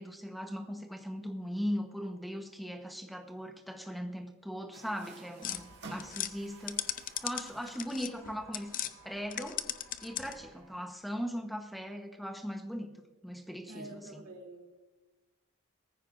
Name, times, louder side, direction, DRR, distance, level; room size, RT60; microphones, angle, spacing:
voice 1, 0.0-8.7 9.0-9.6 10.0-12.9 13.2-14.2, equal, ahead, 4 dB, 1.0 m, -39 dB
Water tap faucet, 4.7-11.0, right 2 dB, 50° right, 1.8 m, -53 dB
sound 1, 5.4-8.9 9.3-10.5, left 11 dB, 40° left, 0.5 m, -38 dB
voice 2, 13.7-14.8, right 1 dB, 85° right, 0 dB, 3.1 m, -47 dB
18.5 x 14.5 x 2.6 m, 1.2 s
head